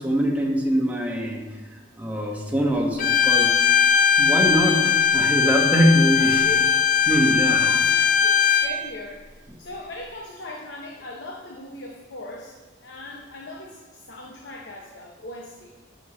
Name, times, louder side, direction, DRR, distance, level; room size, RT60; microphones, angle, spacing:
voice 1, 0.0-1.4 2.0-3.6 4.2-6.4 7.1-7.7, equal, 10° right, -1 dB, 1.2 m, -22 dB
Bowed string instrument, 3.0-8.7, left 7 dB, 45° left, 0.5 m, -19 dB
voice 2, 6.1-6.9 7.6-9.3 9.6-15.7, left 2 dB, 80° left, 0 dB, 0.9 m, -39 dB
12.5 x 6.2 x 3.2 m, 1.3 s
head